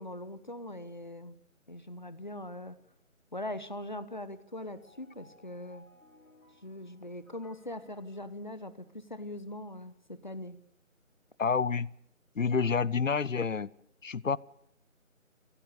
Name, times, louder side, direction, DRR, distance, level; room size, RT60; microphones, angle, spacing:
voice 1, 0.0-1.4 1.7-2.8 3.3-5.9 6.6-10.6, left 1 dB, 35° left, 14 dB, 1.0 m, -41 dB
sound 1, 4.6-8.9, left 2 dB, 90° left, 4.5 m, -62 dB
voice 2, 11.4-11.9 12.4-13.7 14.0-14.4, left 5 dB, 70° left, 23 dB, 0.7 m, -28 dB
26.5 x 17.0 x 6.8 m, 0.73 s
figure-of-eight pair, 175°, 41 cm